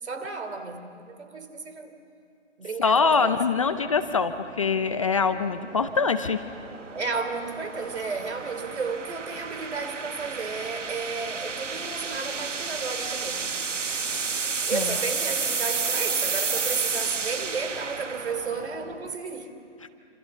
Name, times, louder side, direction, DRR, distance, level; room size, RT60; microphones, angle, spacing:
voice 1, 0.0-1.9 2.6-3.4 6.9-13.6 14.6-19.6, right 4 dB, 65° right, 8 dB, 3.3 m, -33 dB
voice 2, 2.8-6.4 14.7-14.9, left 5 dB, 30° left, 9 dB, 0.7 m, -24 dB
sound 1, 2.9-19.2, right 5 dB, 90° right, 1.6 m, -32 dB
28.5 x 26.5 x 7.0 m, 2.6 s
hypercardioid pair, 165°, 36 cm